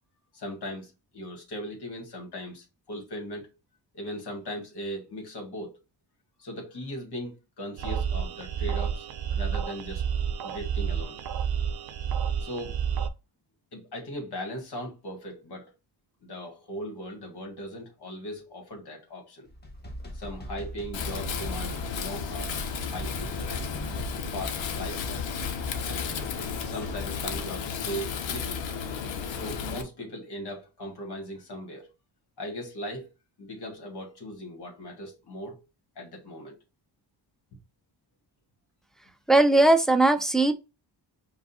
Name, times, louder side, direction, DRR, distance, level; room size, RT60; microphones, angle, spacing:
voice 1, 0.3-3.5 3.9-5.7 6.4-10.0 10.4-11.2 12.4-12.8 13.7-15.7 16.2-19.5 20.1-22.6 22.9-23.7 24.1-25.3 25.8-26.3 26.6-28.6 29.3-31.9 32.4-33.1 33.4-35.6 36.0-36.6, equal, 60° left, 1.9 m, -39 dB
sound 1, 7.8-13.1, right 7 dB, 60° right, 0.7 m, -30 dB
sound 2, 19.5-27.7, equal, 20° left, 1.2 m, -39 dB
Wind, 20.9-29.8, left 6 dB, 85° left, 0.9 m, -33 dB
voice 2, 39.3-40.5, right 2 dB, ahead, 0.4 m, -19 dB
5.0 x 2.4 x 4.2 m
wide cardioid pair, 120°, 44 cm